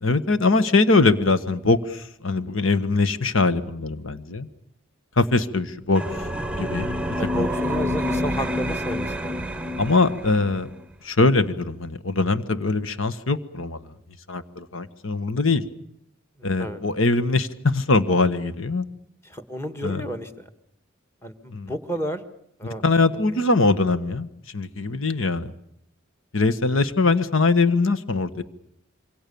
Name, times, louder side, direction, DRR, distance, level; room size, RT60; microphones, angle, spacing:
voice 1, 0.0-4.5 5.2-6.0 6.5-7.0 7.4-7.5 9.8-10.7 11.0-13.8 14.3-15.6 16.4-18.9 19.8-20.0 21.5-21.7 22.8-24.3 24.5-25.5 26.3-28.4, left 3 dB, 80° left, 12 dB, 1.5 m, -22 dB
sound 1, 6.0-10.6, equal, 5° right, 1.0 m, -28 dB
voice 2, 7.2-9.4 16.4-16.8 19.2-20.5 21.2-22.2 22.6-22.8 23.1-23.2, equal, 15° left, 7 dB, 1.8 m, -31 dB
27.0 x 24.0 x 7.0 m, 0.74 s
head